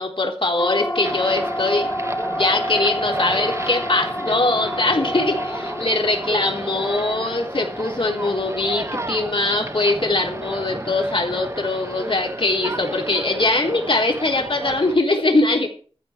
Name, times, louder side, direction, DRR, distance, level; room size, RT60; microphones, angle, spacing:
voice 1, 0.0-1.9 2.3-15.7, left 2 dB, 65° left, 1 dB, 3.9 m, -22 dB
Siren, 0.6-14.9, equal, 35° left, 1.8 m, -31 dB
sound 1, 1.0-15.0, right 1 dB, 30° right, 1.2 m, -33 dB
14.0 x 5.6 x 8.8 m, 0.41 s
wide cardioid pair, 55°, 10 cm